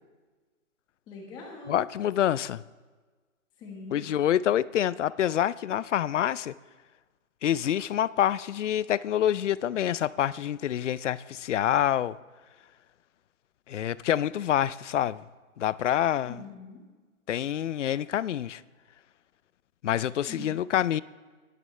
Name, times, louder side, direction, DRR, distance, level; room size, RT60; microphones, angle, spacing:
voice 1, 1.1-1.8 3.6-4.1 16.2-16.8 20.3-20.5, left 3 dB, 10° left, 1.4 m, -43 dB
voice 2, 1.7-2.6 3.9-6.5 7.4-12.2 13.7-15.2 15.6-16.4 17.3-18.6 19.8-21.0, left 11 dB, 65° left, 0.5 m, -27 dB
21.5 x 9.5 x 3.2 m
hypercardioid pair, 165°, 40 cm